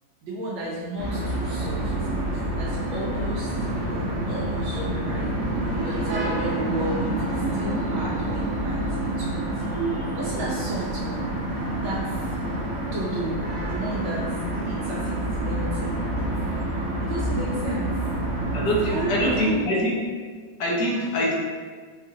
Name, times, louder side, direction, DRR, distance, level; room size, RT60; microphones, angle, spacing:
voice 1, 0.2-1.9 2.3-5.3 5.8-7.1 7.5-9.6 9.9-11.3 11.8-12.4 12.9-14.2 14.5-16.3 17.0-17.9 18.8-19.7, right 1 dB, 80° right, -7 dB, 1.5 m, -33 dB
sound 1, 1.0-19.4, right 1 dB, 60° right, 1.3 m, -27 dB
voice 2, 18.5-20.0 20.6-21.3, equal, 65° left, -4 dB, 1.2 m, -24 dB
4.8 x 2.5 x 2.7 m, 1.5 s
omnidirectional pair, 2.1 m